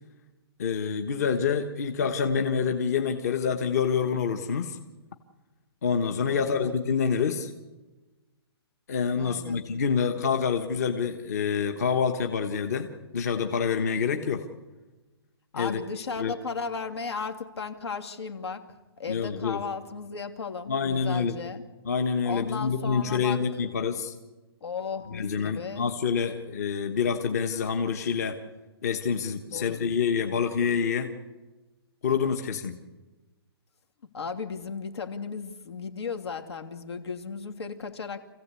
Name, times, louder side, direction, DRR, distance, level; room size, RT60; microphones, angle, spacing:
voice 1, 0.6-4.8 5.8-7.5 8.9-12.9 13.1-14.5 15.5-15.8 16.2-16.3 19.1-19.6 20.7-21.4 21.9-24.1 25.1-28.4 28.8-31.1 32.0-32.8, left 6 dB, 35° left, 6 dB, 1.3 m, -27 dB
voice 2, 6.3-6.7 9.2-9.6 15.5-18.7 19.0-21.6 22.2-23.4 24.6-25.9 29.5-29.9 34.1-38.2, left 5 dB, 75° left, 6 dB, 2.8 m, -35 dB
28.5 x 16.0 x 8.3 m, 1.2 s
hypercardioid pair, 175°, 14 cm